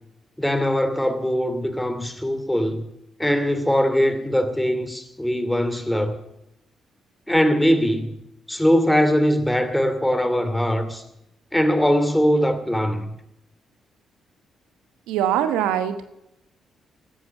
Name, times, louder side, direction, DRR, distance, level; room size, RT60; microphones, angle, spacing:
voice 1, 0.4-2.9 3.2-6.2 7.3-8.1 8.5-11.0 11.5-13.2, equal, 5° left, 2.6 m, -21 dB
voice 2, 15.1-16.0, right 10 dB, 80° right, 1.1 m, -22 dB
16.0 x 12.5 x 5.4 m
hypercardioid pair, 50°, 0 cm